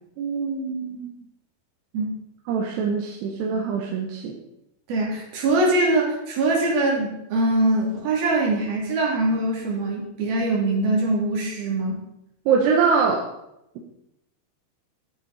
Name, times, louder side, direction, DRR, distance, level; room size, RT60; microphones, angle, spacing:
voice 1, 0.2-1.1 2.5-4.4 12.5-13.3, right 5 dB, 85° right, -1 dB, 3.3 m, -23 dB
voice 2, 4.9-12.0, right 2 dB, 65° right, -2 dB, 4.8 m, -23 dB
13.5 x 8.9 x 4.2 m, 0.83 s
omnidirectional pair, 4.7 m